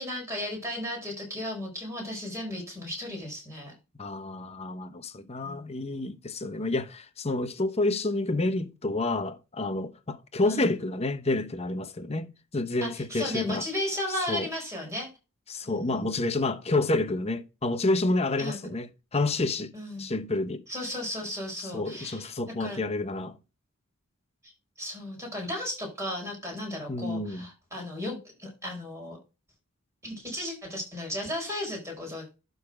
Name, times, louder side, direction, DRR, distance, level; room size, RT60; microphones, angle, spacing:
voice 1, 0.0-3.7 5.4-5.7 10.4-10.7 12.8-15.1 15.6-16.1 18.4-18.7 19.7-20.1 20.7-22.3 22.6-22.8 24.4-24.5 24.8-29.2 30.0-32.3, left 1 dB, 15° right, 4.7 m, -35 dB
voice 2, 4.0-13.7 14.1-14.5 15.5-19.7 20.0-20.6 21.6-23.4 26.9-27.5, left 2 dB, 30° left, 0.8 m, -29 dB
11.5 x 4.0 x 4.9 m
head